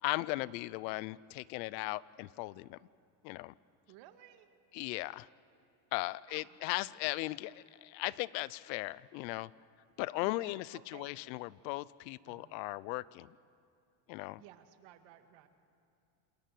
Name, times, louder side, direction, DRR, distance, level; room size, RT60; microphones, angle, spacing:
voice 1, 0.0-2.8 3.2-3.5 4.7-5.3 5.9-9.5 10.0-13.4 14.1-14.4, left 20 dB, 80° left, 21 dB, 0.7 m, -37 dB
voice 2, 3.9-4.5 6.3-6.6 10.2-11.2 12.3-12.5 14.4-15.5, right 12 dB, 60° right, 8 dB, 1.9 m, -57 dB
27.5 x 21.0 x 7.7 m, 2.5 s
supercardioid pair, 130°, 50 cm